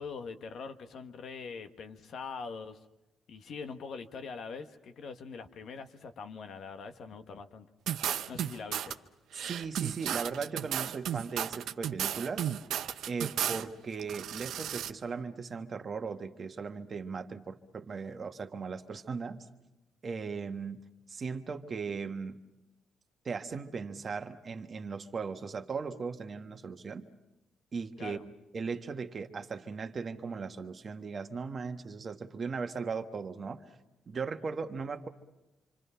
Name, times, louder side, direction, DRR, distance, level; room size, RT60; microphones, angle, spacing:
voice 1, 0.0-2.8 3.3-7.7 8.3-9.0 28.0-28.2, left 5 dB, 65° left, 8 dB, 1.3 m, -43 dB
sound 1, 7.9-8.9 9.3-13.6 14.0-14.9, right 10 dB, 75° right, 0.8 m, -34 dB
voice 2, 9.3-12.5 13.1-19.5 20.0-22.4 23.2-27.0 27.7-28.2 28.5-33.6 34.1-35.1, right 5 dB, 40° right, 6 dB, 1.4 m, -38 dB
27.0 x 25.0 x 5.7 m, 0.98 s
cardioid pair, 90°, 0 cm